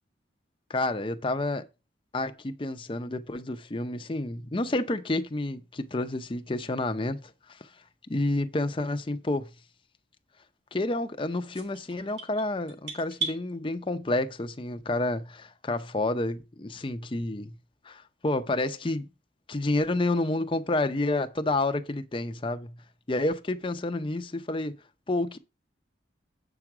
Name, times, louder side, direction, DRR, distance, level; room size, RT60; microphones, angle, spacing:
voice 1, 0.7-1.6 2.1-7.7 8.1-9.5 10.7-17.5 17.8-19.1 19.5-22.7 23.1-24.8 25.1-25.4, left 2 dB, 30° left, 0.6 m, -29 dB
sound 1, 11.5-13.4, right 5 dB, 75° right, 3.1 m, -36 dB
8.3 x 6.0 x 4.8 m
head